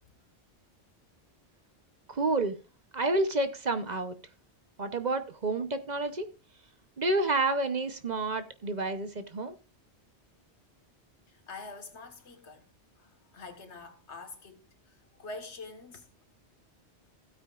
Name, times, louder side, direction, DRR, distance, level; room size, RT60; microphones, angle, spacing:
voice 1, 2.1-2.6 2.9-4.2 4.8-6.3 7.0-9.5, right 2 dB, 40° right, 0.9 m, -29 dB
voice 2, 11.3-12.7 13.0-14.6 14.9-16.1, left 3 dB, 85° left, 1.8 m, -45 dB
16.0 x 8.8 x 2.4 m
omnidirectional pair, 1.1 m